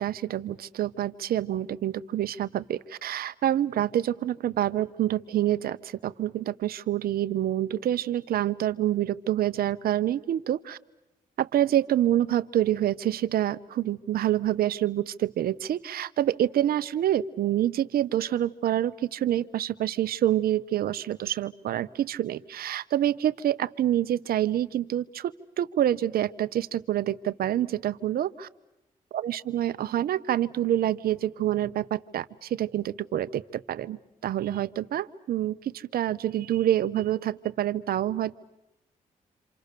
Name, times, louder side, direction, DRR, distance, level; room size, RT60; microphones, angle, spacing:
voice 1, 0.0-10.8 11.4-28.5 29.1-34.0 34.2-38.3, right 12 dB, 80° right, 13 dB, 0.9 m, -27 dB
28.0 x 27.0 x 6.8 m, 0.94 s
cardioid pair, 70°, 15 cm